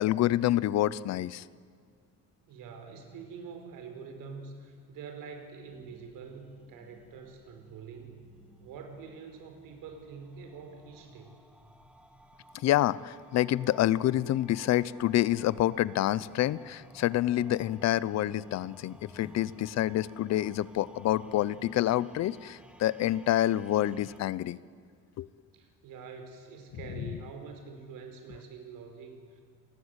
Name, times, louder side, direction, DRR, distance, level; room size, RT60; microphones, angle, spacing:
voice 1, 0.0-1.4 12.5-24.6 25.2-25.3 27.0-27.1, left 13 dB, 55° left, 19 dB, 0.7 m, -27 dB
voice 2, 2.5-8.3 8.6-11.4 25.5-29.4, right 5 dB, 85° right, 5 dB, 4.9 m, -45 dB
sound 1, 5.7-24.2, right 1 dB, 5° right, 1.6 m, -56 dB
sound 2, 16.2-16.6 19.2-19.7 20.1-20.2, left 3 dB, 15° left, 2.4 m, -54 dB
29.5 x 20.5 x 8.1 m, 2.1 s
cardioid pair, 175°, 32 cm